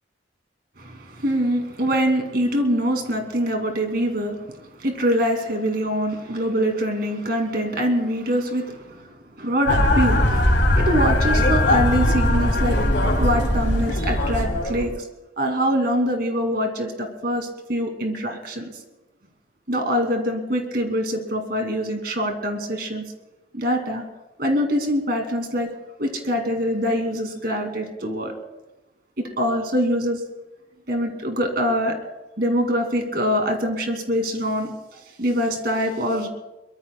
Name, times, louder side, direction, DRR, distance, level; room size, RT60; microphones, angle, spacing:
voice 1, 0.8-4.4 4.8-9.1 9.4-12.8 13.2-14.9 15.4-18.7 19.7-23.0 23.5-24.0 24.4-25.7 26.0-28.3 29.2-30.2 30.9-32.0 32.4-36.3, equal, 55° right, 4 dB, 2.4 m, -24 dB
sound 1, 9.7-14.8, left 1 dB, 85° left, 2.8 m, -20 dB
23.0 x 22.5 x 2.2 m, 0.99 s
head